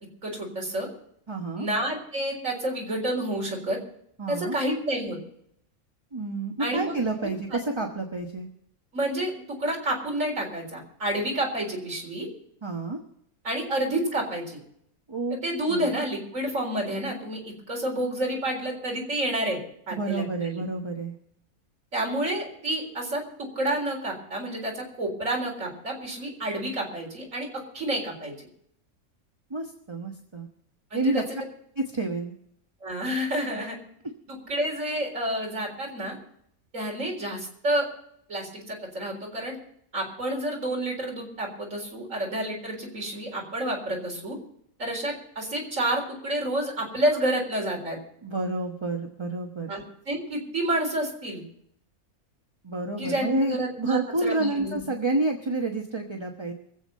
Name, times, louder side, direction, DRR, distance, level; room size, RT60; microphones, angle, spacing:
voice 1, 0.2-0.9 1.6-3.8 4.3-5.2 6.6-6.9 7.2-7.6 8.9-9.3 9.6-12.3 13.4-14.6 15.3-19.6 19.9-20.2 20.5-20.6 21.9-27.5 27.7-28.3 30.9-31.2 32.8-33.8 34.3-36.2 36.7-37.9 38.3-39.5 39.9-44.4 44.8-48.0 49.7-51.4 53.0-54.8, right 1 dB, 60° right, -1 dB, 4.5 m, -29 dB
voice 2, 1.3-1.7 4.2-4.6 6.1-8.5 12.6-13.0 15.1-15.4 15.7-15.9 19.9-21.1 29.5-30.5 30.9-31.4 31.8-32.3 48.2-49.7 52.6-56.5, right 2 dB, 20° right, 2 dB, 1.1 m, -29 dB
23.5 x 8.1 x 5.4 m, 0.71 s
omnidirectional pair, 1.5 m